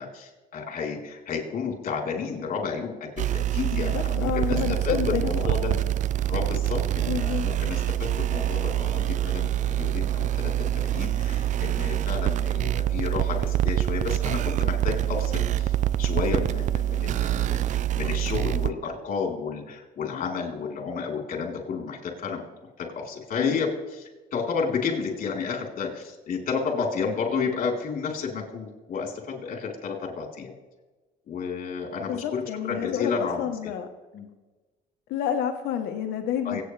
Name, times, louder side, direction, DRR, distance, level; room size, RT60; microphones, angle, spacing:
voice 1, 0.0-3.1 3.5-5.7 6.3-22.4 22.8-30.5 31.3-33.5 34.1-34.3 36.4-36.6, left 5 dB, 50° left, 1 dB, 3.7 m, -31 dB
sound 1, 3.2-18.7, right 12 dB, 45° right, 0.4 m, -26 dB
voice 2, 3.7-5.9 7.1-7.5 23.4-23.6 32.1-33.9 35.1-36.6, left 9 dB, 80° left, 5 dB, 1.1 m, -30 dB
24.5 x 9.2 x 3.3 m, 1.2 s
cardioid pair, 110°, 17 cm